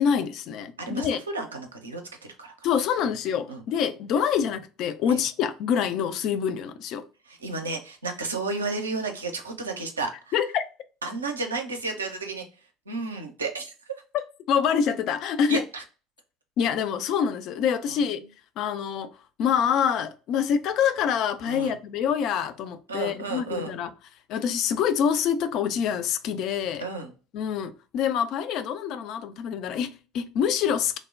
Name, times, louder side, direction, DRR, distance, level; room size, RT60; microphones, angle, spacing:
voice 1, 0.0-1.2 2.6-7.0 10.3-10.6 14.5-15.6 16.6-18.2 18.6-19.1 19.4-23.9 24.3-26.8 27.3-31.0, left 8 dB, 55° left, 0.3 m, -26 dB
voice 2, 0.8-2.0 2.4-2.5 3.0-3.1 3.5-3.6 5.1-5.2 7.3-10.3 11.0-12.4 12.9-13.7 15.5-15.8 17.9-18.1 21.4-21.8 22.9-23.8 26.8-27.1, right 3 dB, 85° right, 0.5 m, -32 dB
3.2 x 2.0 x 2.3 m
figure-of-eight pair, 65°, 0 cm